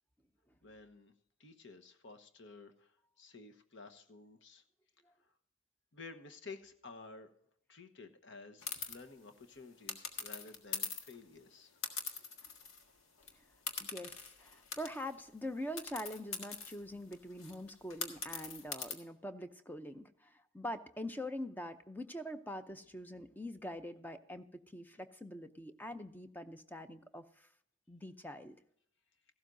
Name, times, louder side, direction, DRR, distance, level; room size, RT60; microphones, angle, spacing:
voice 1, 0.6-1.1 1.4-4.6 5.2-5.3 5.9-7.3 7.7-11.8, left 3 dB, 60° left, 8 dB, 1.1 m, -53 dB
sound 1, 8.6-9.0 9.9-11.2 11.8-12.9 13.2-13.3 13.7-15.1 15.8-18.9, left 5 dB, 80° left, 1.7 m, -42 dB
voice 2, 13.8-27.5 27.9-28.6, left 1 dB, 10° left, 9 dB, 0.6 m, -44 dB
15.0 x 12.5 x 2.6 m, 0.69 s
head